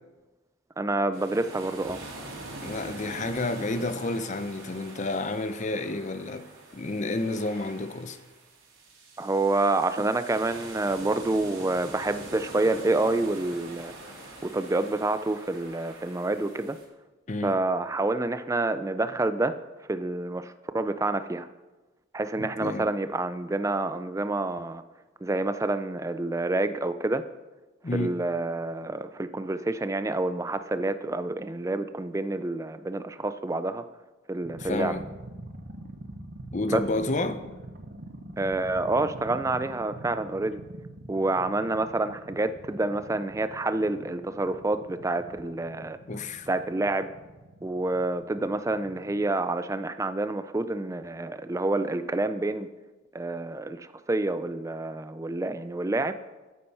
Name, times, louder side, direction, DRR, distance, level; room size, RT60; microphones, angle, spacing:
voice 1, 0.8-2.0 9.2-13.9 14.4-16.8 17.4-19.5 19.9-21.5 22.1-24.8 25.2-27.2 27.9-33.8 34.3-34.9 36.7-36.8 38.4-40.6 41.1-46.0 46.5-47.1 47.6-52.7 53.1-56.1, right 2 dB, 15° right, 0.3 m, -28 dB
sound 1, 1.1-16.8, right 2 dB, 65° right, 2.6 m, -44 dB
voice 2, 2.6-6.5 6.7-8.2 17.3-17.5 22.4-22.9 27.8-28.2 34.6-35.1 36.5-37.4 46.1-46.5, left 2 dB, 35° left, 0.6 m, -30 dB
sound 2, 34.4-49.3, right 1 dB, 45° right, 0.8 m, -44 dB
8.9 x 8.5 x 5.5 m
head